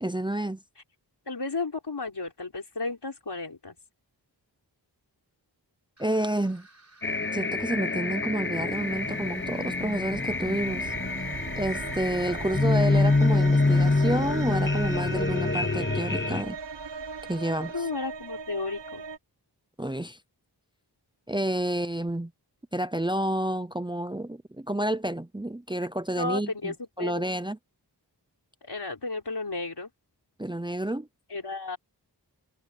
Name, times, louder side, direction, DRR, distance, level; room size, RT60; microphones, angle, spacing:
voice 1, 0.0-0.6 6.0-6.7 7.3-10.9 11.5-16.6 17.3-17.7 19.8-20.2 21.3-22.3 22.7-27.6 30.4-31.1, right 1 dB, 10° right, 0.8 m, -29 dB
voice 2, 1.3-3.7 17.7-19.0 26.2-27.3 28.6-29.9 31.3-31.8, left 3 dB, 70° left, 4.6 m, -33 dB
sound 1, 6.0-17.8, right 2 dB, 40° right, 6.2 m, -57 dB
sound 2, 7.0-16.4, left 3 dB, 25° left, 1.0 m, -26 dB
sound 3, 8.4-19.2, right 5 dB, 85° right, 1.2 m, -39 dB
wide cardioid pair, 70°, 42 cm